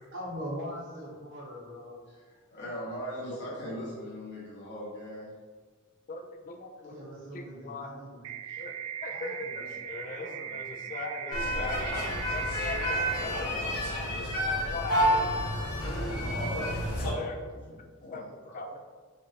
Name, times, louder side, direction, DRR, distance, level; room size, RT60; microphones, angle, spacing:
voice 1, 0.1-2.0 6.8-8.3 9.1-10.9 12.6-12.7 15.8-17.3, equal, 60° right, -3 dB, 1.0 m, -42 dB
voice 2, 2.1-5.3 8.5-8.6 15.8-18.8, equal, 55° left, -6 dB, 1.3 m, -41 dB
voice 3, 6.1-6.9 7.3-7.9 8.6-8.7 9.0-13.8 14.4-15.3 15.8-15.9 16.5-17.4 18.1-18.2 18.5-18.8, left 3 dB, 35° left, 5 dB, 0.4 m, -40 dB
sound 1, 8.2-13.3, right 9 dB, 90° right, 0.4 m, -39 dB
sound 2, 11.3-17.1, equal, 85° left, 1.0 m, -29 dB
5.1 x 2.5 x 2.8 m, 1.5 s
head